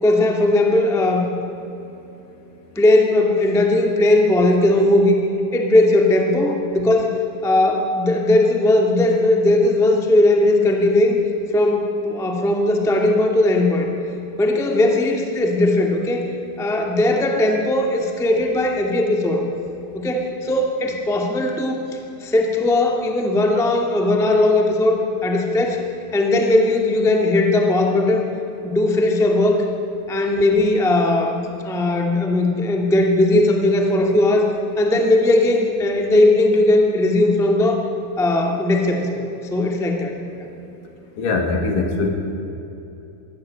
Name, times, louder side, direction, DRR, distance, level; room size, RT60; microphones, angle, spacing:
voice 1, 0.0-1.3 2.7-5.1 5.5-11.2 11.5-13.9 14.4-16.3 16.6-19.4 19.9-21.8 22.2-25.8 26.1-28.3 28.6-29.6 30.1-34.5 34.8-37.9 38.2-39.2 39.5-40.5, left 2 dB, ahead, 1 dB, 0.7 m, -18 dB
voice 2, 41.2-42.1, left 3 dB, 60° left, 3 dB, 3.6 m, -21 dB
23.0 x 16.5 x 8.8 m, 2.9 s
omnidirectional pair, 4.5 m